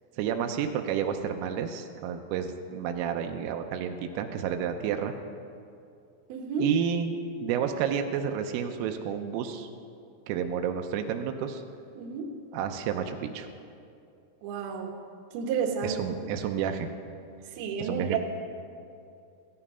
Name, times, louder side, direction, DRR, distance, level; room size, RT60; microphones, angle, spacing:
voice 1, 0.2-5.1 6.6-7.2 7.4-9.7 10.3-11.6 12.5-13.5 15.8-16.9 17.8-18.2, right 8 dB, 85° right, 5 dB, 3.4 m, -30 dB
voice 2, 6.3-6.7 12.0-12.3 14.4-15.0 15.3-16.0 17.6-18.2, right 6 dB, 65° right, 1 dB, 2.6 m, -31 dB
16.0 x 14.0 x 5.5 m, 2.5 s
omnidirectional pair, 5.8 m